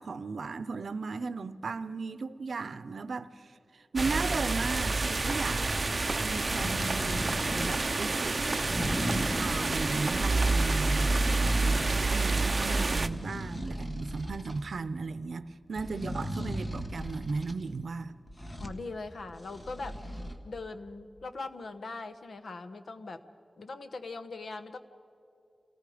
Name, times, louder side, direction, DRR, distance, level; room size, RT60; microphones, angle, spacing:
voice 1, 0.0-3.3 3.7-5.7 6.2-8.4 9.1-11.2 11.6-18.2, right 4 dB, 80° right, 0.6 m, -36 dB
sound 1, 4.0-13.1, right 3 dB, 40° right, 0.6 m, -28 dB
sound 2, 6.4-7.8 8.5-9.9 10.6-12.2 12.5-14.6 15.7-17.6 18.3-18.8 19.3-20.3, equal, 25° left, 1.5 m, -37 dB
voice 2, 10.4-10.8 11.1-11.7 18.6-20.0 20.4-23.2 23.6-24.8, left 3 dB, 75° left, 1.0 m, -41 dB
29.0 x 18.5 x 5.0 m
wide cardioid pair, 120°, 0 cm